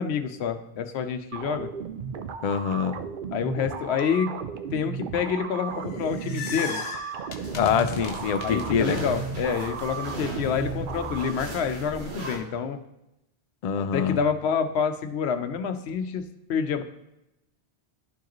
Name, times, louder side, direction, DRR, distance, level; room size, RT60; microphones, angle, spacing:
voice 1, 0.0-1.7 3.3-4.3 4.7-6.8 8.4-12.8 13.8-16.8, left 6 dB, 90° left, 9 dB, 0.9 m, -28 dB
sound 1, 1.3-11.3, right 6 dB, 60° right, 0.6 m, -35 dB
voice 2, 2.4-2.9 7.5-9.0 13.6-14.2, left 7 dB, 50° left, 8 dB, 0.5 m, -25 dB
sound 2, 5.7-9.0, left 6 dB, 65° left, 0.9 m, -37 dB
sound 3, 7.4-12.4, right 1 dB, 85° right, 1.7 m, -38 dB
11.0 x 4.7 x 3.0 m, 0.89 s
omnidirectional pair, 1.1 m